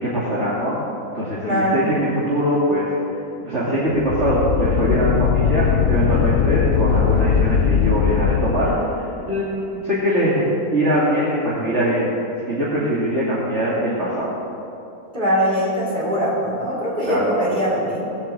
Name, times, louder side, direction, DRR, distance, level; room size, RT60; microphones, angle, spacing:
voice 1, 0.0-0.8 1.1-2.9 3.4-8.7 9.3-12.1 12.5-14.3 17.1-17.2, equal, 50° right, -8 dB, 2.9 m, -22 dB
voice 2, 1.4-1.8 15.1-18.2, equal, 30° right, -6 dB, 4.3 m, -22 dB
sound 1, 3.9-8.8, left 7 dB, 60° left, 0.8 m, -19 dB
19.5 x 8.1 x 7.6 m, 2.8 s
omnidirectional pair, 1.6 m